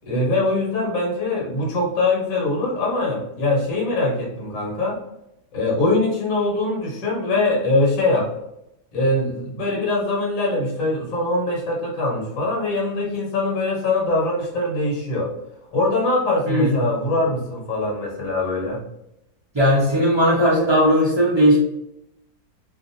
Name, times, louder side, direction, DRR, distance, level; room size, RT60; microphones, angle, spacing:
voice 1, 0.1-5.0 5.5-8.3 8.9-15.3 15.7-18.8, left 2 dB, 60° left, -2 dB, 1.3 m, -22 dB
voice 2, 19.5-21.6, equal, 45° right, -6 dB, 0.3 m, -17 dB
2.7 x 2.5 x 2.6 m, 0.84 s
omnidirectional pair, 1.7 m